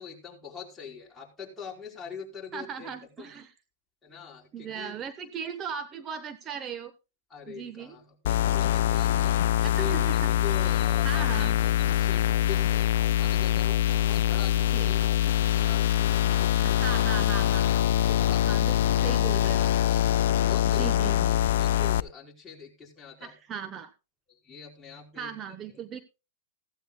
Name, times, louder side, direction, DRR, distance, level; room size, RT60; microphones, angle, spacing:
voice 1, 0.0-2.9 3.2-3.3 4.0-5.0 7.3-9.3 9.6-12.9 13.2-17.0 19.8-23.3 24.3-25.3, left 5 dB, 15° left, -3 dB, 4.9 m, -43 dB
voice 2, 2.5-3.5 4.5-6.9 7.5-8.0 9.6-10.3 11.0-11.6 14.7-14.9 16.6-17.7 18.5-19.7 20.7-21.5 23.2-23.9 25.2-26.0, right 7 dB, 30° right, 10 dB, 1.1 m, -38 dB
sound 1, 8.3-22.0, left 11 dB, 70° left, 0.5 m, -24 dB
16.0 x 15.0 x 2.3 m, 0.30 s
hypercardioid pair, 115°, 0 cm